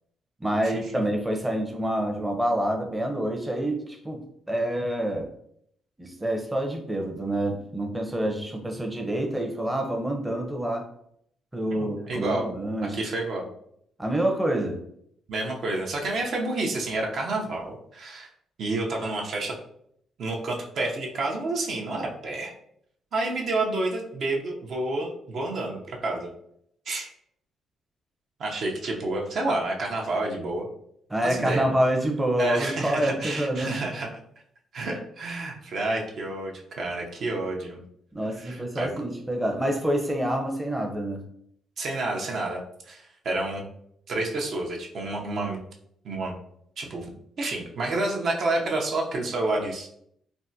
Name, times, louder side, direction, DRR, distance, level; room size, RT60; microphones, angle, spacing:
voice 1, 0.4-5.3 6.0-10.9 11.5-13.0 14.0-14.8 31.1-33.8 38.1-41.3, right 1 dB, 10° right, 2 dB, 0.6 m, -27 dB
voice 2, 11.8-12.5 12.9-13.5 15.3-18.3 18.6-19.5 20.2-22.5 23.1-26.3 26.9-27.1 28.4-30.7 31.2-31.7 32.4-34.1 34.7-37.8 38.4-38.9 41.8-42.6 42.9-43.6 44.1-45.6 46.0-46.3 46.8-47.1 47.4-49.9, right 2 dB, 60° right, 0 dB, 0.6 m, -29 dB
3.4 x 2.1 x 2.7 m, 0.70 s
cardioid pair, 90°, 0 cm